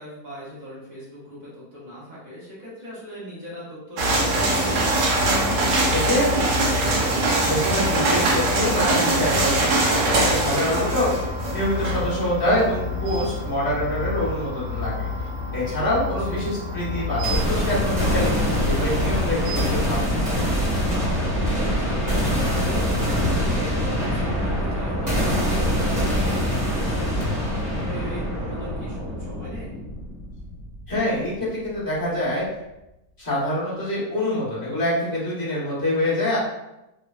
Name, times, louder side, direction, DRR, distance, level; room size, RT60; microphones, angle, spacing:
voice 1, 0.0-4.8 16.2-16.5 21.4-27.5 27.8-29.7, right 1 dB, 45° right, -9 dB, 0.5 m, -39 dB
sound 1, 4.0-19.8, right 1 dB, 80° right, 1.2 m, -24 dB
voice 2, 5.7-6.3 7.4-11.1 11.5-15.1 15.5-20.1 30.9-32.5 33.2-36.4, left 1 dB, 20° left, -9 dB, 0.6 m, -25 dB
sound 2, 17.2-31.2, equal, 30° right, 0.9 m, -24 dB
sound 3, 23.2-24.7 27.2-27.8, left 1 dB, 75° left, 1.1 m, -33 dB
3.0 x 2.1 x 2.3 m, 0.91 s
omnidirectional pair, 1.8 m